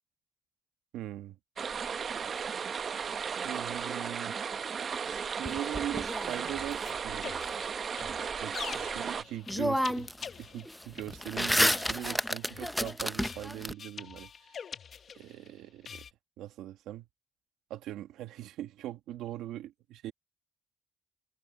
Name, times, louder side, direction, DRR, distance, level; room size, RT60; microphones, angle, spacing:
voice 1, 0.9-1.4 2.0-2.5 3.3-4.4 5.0-7.3 8.4-10.1 10.4-14.6 15.1-16.0 16.4-17.1 17.7-20.1, right 13 dB, 90° right, 1.8 m, -41 dB
sound 1, 1.6-9.2, right 6 dB, 50° right, 0.8 m, -35 dB
sound 2, 5.5-6.7 9.0-9.1 9.5-10.3 10.6-13.7, equal, ahead, 0.7 m, -30 dB
sound 3, 6.2-15.5 15.8-16.1, left 7 dB, 50° left, 0.9 m, -44 dB
cardioid pair, 90°, 0 cm